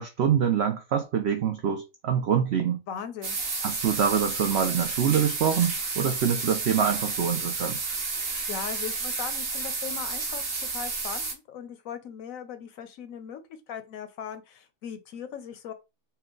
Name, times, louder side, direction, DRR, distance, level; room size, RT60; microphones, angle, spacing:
voice 1, 0.0-2.8 3.6-7.8, right 8 dB, 80° right, 0.5 m, -25 dB
voice 2, 2.9-3.4 8.3-10.4 10.7-13.4 13.7-15.7, left 8 dB, 70° left, 0.9 m, -39 dB
sound 1, 3.2-11.3, right 3 dB, 55° right, 1.3 m, -31 dB
4.3 x 2.1 x 3.7 m
omnidirectional pair, 1.7 m